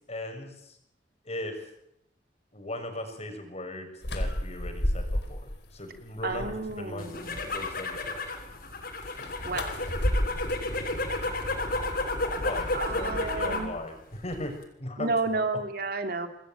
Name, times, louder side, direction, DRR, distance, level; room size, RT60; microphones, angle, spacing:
voice 1, 0.1-0.8 1.2-1.7 2.5-5.5 5.7-8.2 12.4-14.5 14.8-15.3, left 1 dB, 40° left, 5 dB, 6.6 m, -38 dB
sound 1, 4.0-5.6 6.0-6.8 9.0-11.8, equal, 85° left, 4.4 m, -32 dB
voice 2, 6.2-7.4 9.4-9.7 12.7-13.7 15.0-16.3, right 3 dB, 60° right, 6 dB, 3.1 m, -31 dB
sound 2, 7.0-13.7 14.1-14.6, left 2 dB, 55° left, 6.7 m, -32 dB
28.0 x 20.5 x 9.2 m, 0.77 s
head